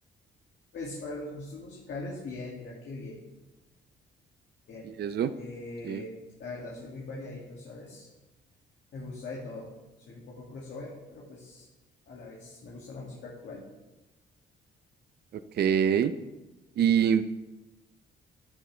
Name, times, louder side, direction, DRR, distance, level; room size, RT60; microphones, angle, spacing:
voice 1, 0.7-3.2 4.7-4.9 5.3-6.1 6.4-8.1 8.9-9.7 10.1-11.7 12.1-13.6, left 2 dB, 65° left, -4 dB, 2.2 m, -41 dB
voice 2, 4.8-5.3 5.8-6.0 15.5-16.1 16.8-17.2, right 8 dB, 55° right, 12 dB, 0.6 m, -24 dB
11.0 x 10.5 x 3.3 m, 1.1 s
cardioid pair, 90°, 20 cm